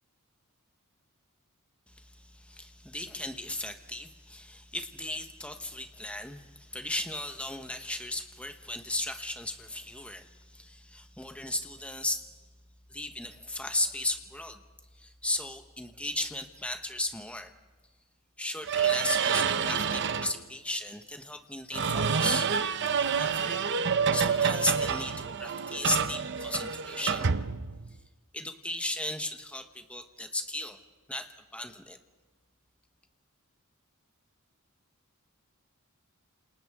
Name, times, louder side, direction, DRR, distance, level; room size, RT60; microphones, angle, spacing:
voice 1, 2.2-12.2 12.9-14.6 15.0-17.5 18.4-22.5 23.0-23.7 24.1-27.3 28.3-30.8 31.1-32.0, left 1 dB, 5° left, 7 dB, 1.1 m, -35 dB
sound 1, 18.6-20.4 21.7-28.0, right 6 dB, 55° right, 0.7 m, -28 dB
29.0 x 27.5 x 3.7 m, 1.3 s
head